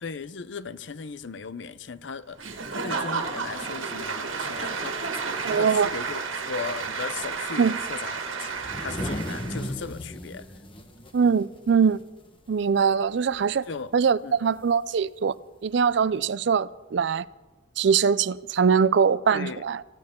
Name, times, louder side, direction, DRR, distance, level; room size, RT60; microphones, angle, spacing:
voice 1, 0.0-10.5 13.7-13.9 14.2-14.5 19.3-19.6, left 5 dB, 65° left, 0.6 m, -37 dB
Applause / Crowd, 2.4-9.7, right 5 dB, 85° right, 1.8 m, -32 dB
voice 2, 5.4-5.9 7.6-7.8 11.1-12.0 12.5-13.7 13.9-15.3 15.6-17.2 17.8-19.8, right 6 dB, 60° right, 0.4 m, -22 dB
sound 1, 8.5-12.3 12.6-12.8 13.1-13.6 14.7-14.8 15.8-15.9, equal, 25° left, 1.2 m, -36 dB
20.5 x 15.0 x 3.7 m
head